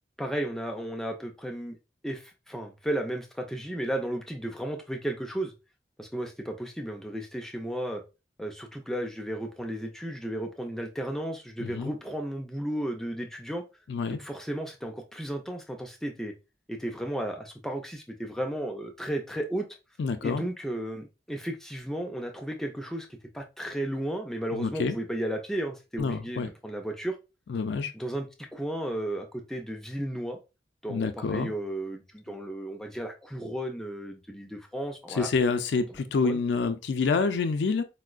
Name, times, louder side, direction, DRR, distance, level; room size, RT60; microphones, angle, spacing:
voice 1, 0.2-1.7 2.0-5.5 6.0-8.0 8.4-13.6 14.2-16.3 16.7-19.7 20.2-23.1 23.3-27.2 27.9-30.4 30.8-35.3 36.2-36.4, right 1 dB, 5° left, 0.3 m, -34 dB
voice 2, 11.6-11.9 13.9-14.2 20.0-20.4 24.5-24.9 26.0-26.5 27.5-27.9 30.9-31.5 35.1-37.8, left 4 dB, 85° left, 0.4 m, -27 dB
4.3 x 2.0 x 2.4 m
head